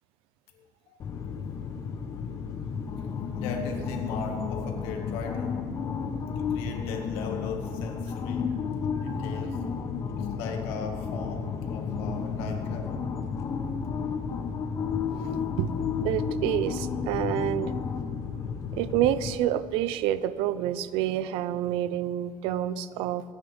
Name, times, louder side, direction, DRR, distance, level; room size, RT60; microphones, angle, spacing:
voice 1, 0.6-1.0 3.2-5.6 6.4-8.6 9.0-9.7 10.1-13.1, left 4 dB, 80° left, 3 dB, 1.9 m, -38 dB
sound 1, 1.0-19.4, left 6 dB, 35° left, 0.8 m, -32 dB
voice 2, 15.1-15.7 16.0-17.7 18.7-23.2, right 12 dB, 70° right, 16 dB, 0.5 m, -28 dB
25.0 x 9.6 x 3.5 m, 2.2 s
cardioid pair, 155°, 9 cm